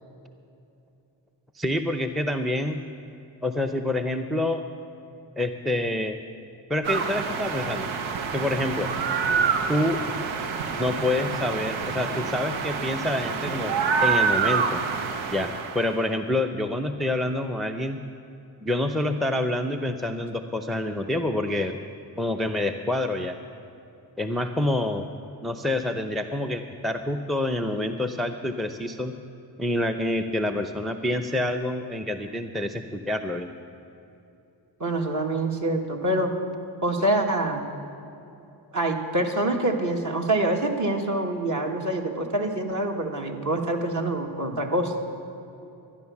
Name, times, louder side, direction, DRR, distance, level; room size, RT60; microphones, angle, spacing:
voice 1, 1.5-2.8 3.4-4.6 5.4-6.2 6.7-7.9 8.3-8.9 9.7-10.0 10.7-13.8 14.0-14.8 15.3-18.0 18.6-21.8 22.2-23.4 24.2-25.1 25.4-29.1 29.6-33.5, left 1 dB, ahead, 6 dB, 0.6 m, -27 dB
sound 1, 6.8-16.0, right 5 dB, 80° right, 1.0 m, -27 dB
voice 2, 34.8-36.3 36.8-37.6 38.7-44.9, right 1 dB, 40° right, 2 dB, 1.8 m, -25 dB
12.5 x 10.5 x 7.1 m, 2.8 s
supercardioid pair, 55°, 46 cm